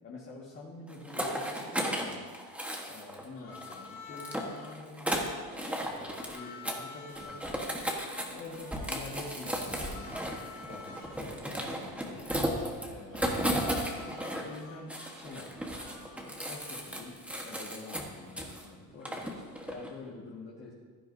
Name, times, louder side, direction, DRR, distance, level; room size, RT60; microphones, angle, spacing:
voice 1, 0.0-2.3 2.9-5.3 5.8-7.9 8.2-10.2 10.7-12.3 12.9-13.9 14.4-19.4 19.7-20.7, left 3 dB, 30° left, -4 dB, 1.8 m, -47 dB
sound 1, 0.9-3.3 3.5-6.4 6.6-6.8 7.1-14.6 14.9-18.7 19.1-19.9, equal, 5° right, 1.3 m, -35 dB
Harmonica, 3.3-4.8 6.2-11.2 13.1-17.0, left 5 dB, 60° left, 2.4 m, -49 dB
15.5 x 11.5 x 2.7 m, 1.5 s
cardioid pair, 140°, 37 cm